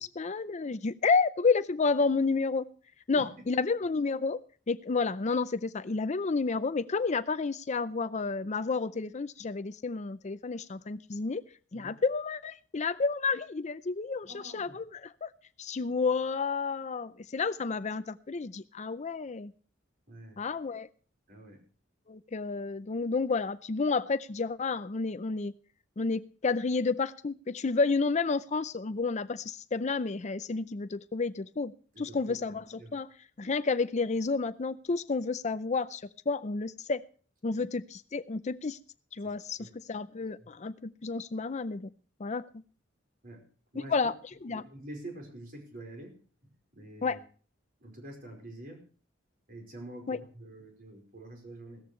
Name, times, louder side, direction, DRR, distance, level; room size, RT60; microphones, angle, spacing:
voice 1, 0.0-2.7 3.1-4.4 4.7-11.4 11.7-15.3 15.6-19.5 20.4-20.9 22.1-25.5 26.0-31.7 32.0-33.1 33.4-37.0 37.4-38.8 39.1-41.9 42.2-42.4 43.9-44.1 44.4-44.6 47.0-47.2 50.1-50.2, left 4 dB, 35° left, 14 dB, 0.5 m, -30 dB
voice 2, 14.2-14.8 20.1-20.5 21.3-21.6 31.9-32.5 32.8-32.9 37.5-37.6 39.2-39.7 40.4-40.5 43.2-43.5 43.7-43.9 44.5-46.1 46.7-47.2 47.8-48.8 49.5-51.8, right 1 dB, 45° right, 3 dB, 4.9 m, -46 dB
17.0 x 14.0 x 3.2 m, 0.41 s
head